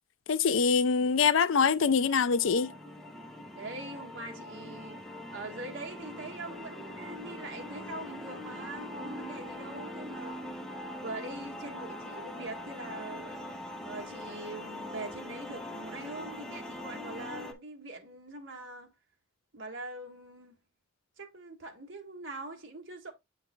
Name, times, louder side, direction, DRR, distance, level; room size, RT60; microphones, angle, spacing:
voice 1, 0.3-2.7, left 5 dB, 70° left, 0.4 m, -24 dB
sound 1, 1.8-17.5, left 1 dB, ahead, 0.7 m, -42 dB
voice 2, 3.5-5.0 5.3-10.4 11.0-13.4 13.8-18.9 19.5-20.5 21.2-23.1, right 2 dB, 65° right, 1.5 m, -43 dB
8.0 x 5.2 x 2.3 m
head